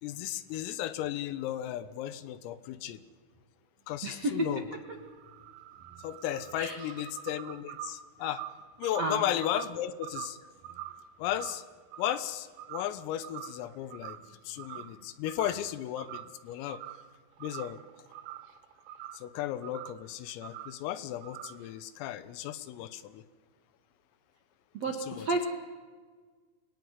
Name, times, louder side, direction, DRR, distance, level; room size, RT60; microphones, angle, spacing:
voice 1, 0.0-3.0 3.9-4.6 6.0-8.4 8.8-10.4 11.2-11.6 12.0-14.2 14.5-16.8 17.4-17.8 19.1-23.2 25.1-25.3, left 12 dB, 90° left, 13 dB, 3.8 m, -35 dB
voice 2, 4.0-5.0 6.5-6.9 9.0-9.2 24.7-25.5, right 2 dB, 60° right, 3 dB, 1.7 m, -32 dB
sound 1, 4.7-12.3 12.6-13.0 13.2-14.3 14.6-14.9 15.3-15.7 16.0-17.1 17.4-19.3 19.6-20.0 20.4-20.8 21.2-21.7, right 12 dB, 80° right, 3.8 m, -44 dB
27.5 x 22.0 x 9.7 m, 1.5 s
omnidirectional pair, 5.9 m